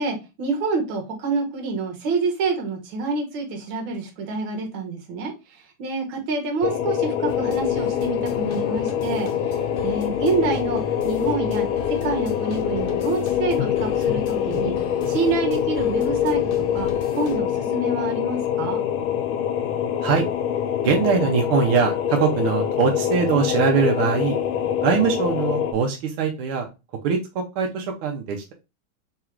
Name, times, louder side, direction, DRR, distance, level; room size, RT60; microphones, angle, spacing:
voice 1, 0.0-5.3 5.8-9.3 9.8-14.8 15.1-16.9 17.2-18.8, right 4 dB, 70° right, 2 dB, 1.8 m, -27 dB
sound 1, 6.6-25.7, left 9 dB, 80° left, 1.4 m, -25 dB
sound 2, 7.3-17.4, left 5 dB, 60° left, 1.2 m, -37 dB
voice 2, 20.8-24.4 24.8-26.7 27.0-28.5, right 6 dB, 85° right, 2 dB, 1.6 m, -22 dB
3.9 x 2.4 x 4.4 m, 0.28 s
omnidirectional pair, 2.3 m